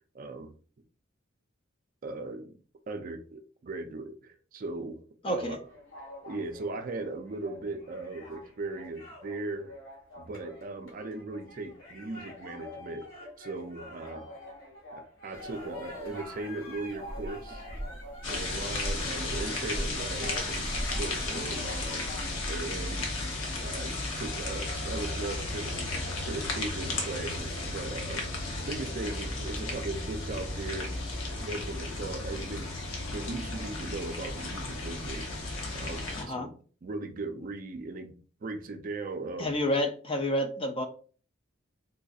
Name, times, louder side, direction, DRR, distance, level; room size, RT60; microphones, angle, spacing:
voice 1, 0.1-0.5 2.0-2.6 2.9-5.6 6.2-9.8 10.2-13.1 13.4-14.3 14.9-17.6 18.3-20.7 21.0-22.1 22.4-23.1 23.6-28.3 28.6-30.9 31.3-32.7 33.1-35.3 35.7-36.5 36.8-38.1 38.4-39.5, right 3 dB, 40° right, 7 dB, 0.4 m, -38 dB
voice 2, 5.2-5.6 36.2-36.5 39.4-40.9, left 1 dB, 25° left, 6 dB, 0.4 m, -29 dB
sound 1, 5.6-22.4, left 1 dB, 65° left, 1.6 m, -46 dB
sound 2, 15.3-22.3, equal, 5° right, 0.7 m, -40 dB
sound 3, 18.2-36.2, left 2 dB, 80° left, 0.9 m, -34 dB
3.8 x 2.6 x 2.4 m, 0.40 s
head